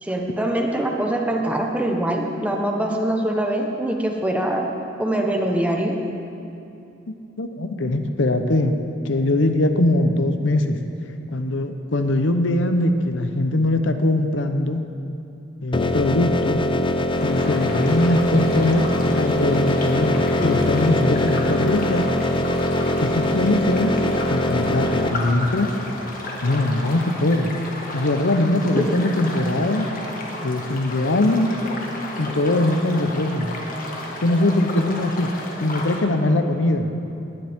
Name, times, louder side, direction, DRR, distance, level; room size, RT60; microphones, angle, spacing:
voice 1, 0.0-4.7 5.0-6.0 28.8-29.2, right 1 dB, 10° right, 1 dB, 1.1 m, -23 dB
voice 2, 7.4-8.8 9.0-10.8 11.3-14.8 15.6-16.6 17.2-22.1 23.0-23.9 24.3-25.7 26.4-27.5 27.9-29.9 30.4-31.5 32.2-33.5 34.2-35.3 35.6-36.9, left 1 dB, 75° left, 7 dB, 0.8 m, -21 dB
sound 1, 15.7-25.1, left 1 dB, 25° left, 0.6 m, -22 dB
sound 2, 17.2-36.0, left 2 dB, 50° left, 1.7 m, -33 dB
19.0 x 11.0 x 3.6 m, 2.7 s
head